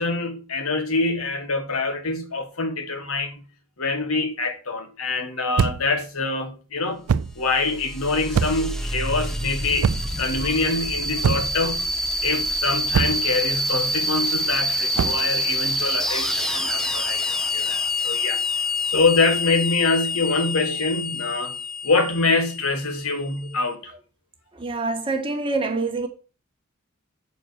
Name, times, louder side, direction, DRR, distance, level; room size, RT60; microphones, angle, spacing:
voice 1, 0.0-3.4 3.8-7.0 7.3-11.8 12.2-18.4 18.9-21.6 21.8-23.9, left 3 dB, 80° left, 1.6 m, -25 dB
sound 1, 5.6-6.0 7.1-7.4 8.3-8.8 9.8-10.2 11.2-11.6 12.9-13.3 14.9-15.3, right 6 dB, 90° right, 0.4 m, -23 dB
sound 2, 7.2-23.5, left 1 dB, ahead, 0.7 m, -27 dB
voice 2, 24.6-26.1, right 3 dB, 25° right, 1.5 m, -25 dB
7.7 x 4.6 x 6.4 m
head